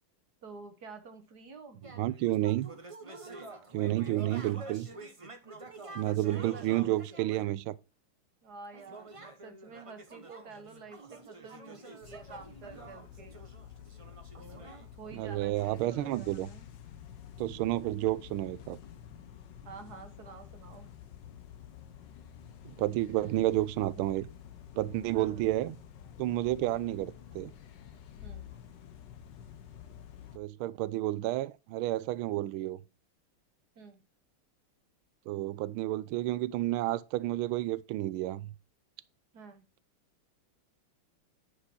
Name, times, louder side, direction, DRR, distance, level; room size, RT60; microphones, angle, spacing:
voice 1, 0.4-1.8 6.3-6.9 8.4-9.1 9.4-13.4 14.3-14.7 15.0-16.7 19.6-20.9 25.1-25.5 28.2-28.5 33.7-34.0 39.3-39.6, right 4 dB, 55° right, 1.5 m, -49 dB
sound 1, 1.8-7.5 8.7-15.9, right 2 dB, 30° right, 0.6 m, -48 dB
voice 2, 2.0-2.7 3.7-4.9 5.9-7.7 15.1-16.5 17.4-18.8 22.6-24.3 24.7-25.8 26.2-27.5 30.3-32.8 35.3-38.5, right 15 dB, 80° right, 1.4 m, -30 dB
sound 2, 12.0-30.4, left 9 dB, 60° left, 1.5 m, -50 dB
10.5 x 5.0 x 4.3 m
omnidirectional pair, 2.4 m